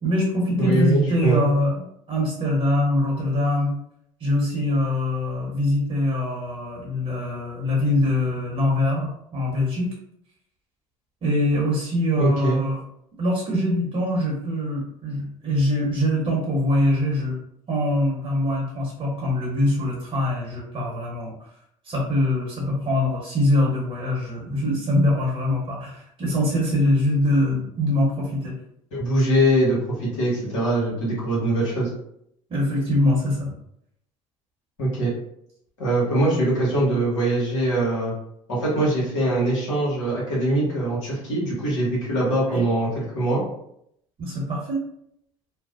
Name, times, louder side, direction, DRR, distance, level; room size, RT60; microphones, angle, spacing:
voice 1, 0.0-1.7 2.1-3.7 4.2-9.9 11.2-12.8 13.2-17.4 17.7-21.3 21.8-28.6 32.5-33.5 42.5-42.6 44.2-44.8, left 1 dB, 40° right, -3 dB, 0.9 m, -23 dB
voice 2, 0.6-1.4 12.2-12.6 28.9-31.9 34.8-35.1 35.8-38.1 38.5-43.4, right 1 dB, 85° left, -7 dB, 1.1 m, -22 dB
2.5 x 2.0 x 2.4 m, 0.73 s
hypercardioid pair, 60°, 16 cm